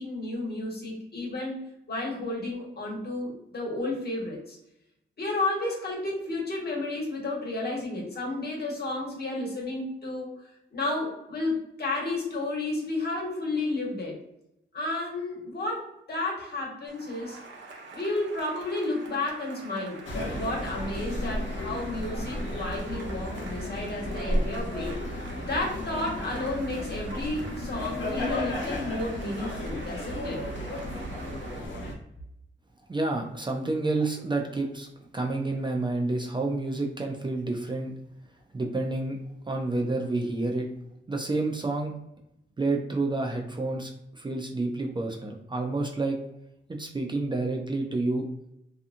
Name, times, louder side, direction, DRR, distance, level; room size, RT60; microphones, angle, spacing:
voice 1, 0.0-1.6 1.9-4.6 5.2-14.2 14.7-17.4 17.9-20.0 20.3-25.0 25.4-30.4, left 2 dB, 50° left, -2 dB, 1.1 m, -32 dB
Cheering / Applause, 16.9-31.7, right 3 dB, 65° right, 0.7 m, -46 dB
sound 1, 20.1-31.9, left 1 dB, 70° left, 0.9 m, -33 dB
voice 2, 32.9-34.9 35.1-37.9 38.5-39.2 39.5-40.7 41.1-41.9 42.6-46.2 46.8-48.3, right 2 dB, 25° right, 2 dB, 0.4 m, -29 dB
2.8 x 2.3 x 2.5 m, 0.82 s
cardioid pair, 90°, 20 cm